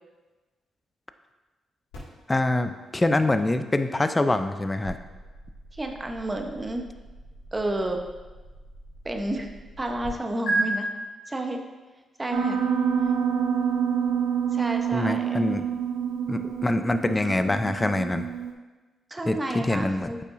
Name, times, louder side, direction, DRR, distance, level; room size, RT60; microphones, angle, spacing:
sound 1, 1.9-10.1 10.5-10.6, right 2 dB, 90° left, 2.0 m, -37 dB
voice 1, 2.3-5.0 14.9-15.6 16.3-18.3 19.3-20.1, left 2 dB, 20° left, 9 dB, 0.5 m, -25 dB
voice 2, 5.7-6.9 7.5-8.0 9.0-9.5 9.8-10.9 11.3-11.6 12.2-12.6 14.5-15.4 19.1-20.2, right 1 dB, 25° right, 4 dB, 0.9 m, -30 dB
Piano, 12.3-18.5, right 7 dB, 80° right, 0.6 m, -27 dB
8.4 x 5.4 x 2.6 m, 1.2 s
supercardioid pair, 55°, 0 cm